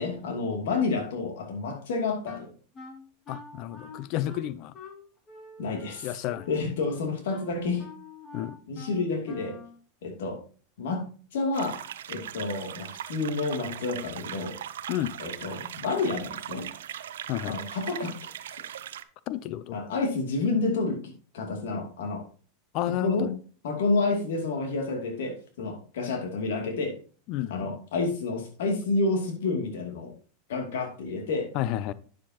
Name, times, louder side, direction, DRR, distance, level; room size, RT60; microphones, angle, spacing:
voice 1, 0.0-2.5 5.6-6.2 6.5-7.9 8.7-9.6 10.0-10.4 10.8-11.0 11.3-11.8 12.1-14.5 15.2-16.7 17.4-18.3 19.7-21.0 21.3-22.2 23.0-23.3 23.6-26.9 27.5-30.1 30.5-31.5, left 3 dB, 80° left, 2.5 m, -29 dB
Wind instrument woodwind instrument, 2.2-9.8, left 2 dB, 25° left, 2.1 m, -46 dB
voice 2, 3.3-4.7 6.0-6.5 8.3-8.6 14.9-15.2 17.3-17.6 19.3-19.8 22.7-23.4 27.3-27.8 31.5-31.9, left 13 dB, 50° left, 0.5 m, -31 dB
sound 1, 11.5-19.0, right 10 dB, 90° right, 0.6 m, -39 dB
9.4 x 7.3 x 2.9 m
supercardioid pair, 130°, 0 cm